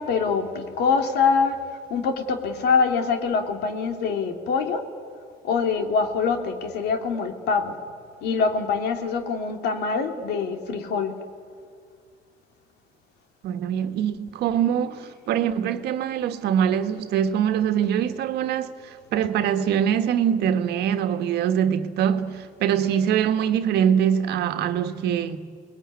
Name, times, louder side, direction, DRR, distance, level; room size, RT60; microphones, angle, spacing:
voice 1, 0.0-1.6 1.9-4.8 5.4-7.7 8.2-11.1, left 5 dB, 75° left, 2.8 m, -24 dB
voice 2, 13.4-25.4, right 9 dB, 75° right, 1.6 m, -23 dB
29.0 x 21.0 x 9.7 m
cardioid pair, 110°, 17 cm